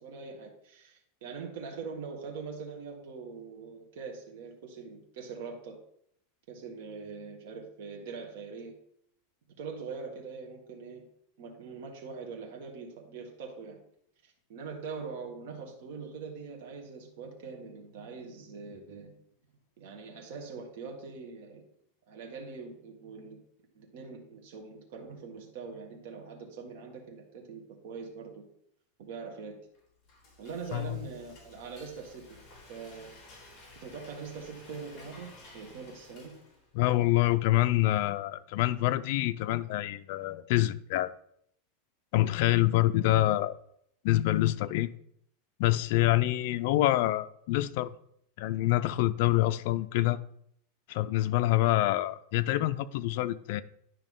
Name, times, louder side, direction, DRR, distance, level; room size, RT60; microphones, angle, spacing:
voice 1, 0.0-5.8 6.5-8.8 9.6-11.0 11.4-13.8 14.2-19.1 19.8-21.6 22.1-23.4 23.8-28.4 29.0-29.6 30.4-32.4 32.7-33.2 33.8-36.3, right 5 dB, 60° right, 1.7 m, -43 dB
Frying (food), 29.7-36.8, left 2 dB, 25° left, 3.6 m, -54 dB
voice 2, 36.7-41.1 42.1-43.5 44.0-44.9 45.6-47.9 48.4-50.2 50.9-53.6, left 16 dB, 55° left, 0.4 m, -26 dB
10.5 x 5.7 x 3.7 m
supercardioid pair, 160°, 0 cm